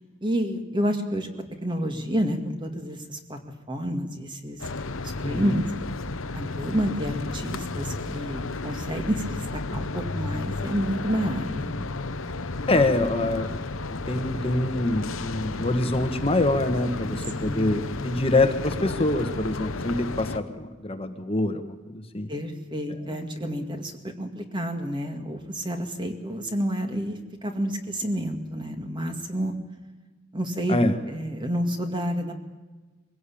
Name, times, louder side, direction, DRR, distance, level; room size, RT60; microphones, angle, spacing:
voice 1, 0.2-1.3 1.6-3.4 3.7-4.6 5.0-5.6 6.4-9.4 9.7-11.7 17.4-17.8 22.3-29.6 30.3-32.3, equal, 20° right, 5 dB, 2.1 m, -29 dB
sound 1, 4.6-20.4, left 3 dB, 65° left, 1.0 m, -32 dB
voice 2, 5.2-5.5 12.7-13.5 13.9-22.3 30.7-31.0, left 2 dB, 25° left, 7 dB, 1.4 m, -25 dB
23.0 x 17.0 x 8.6 m, 1.3 s
head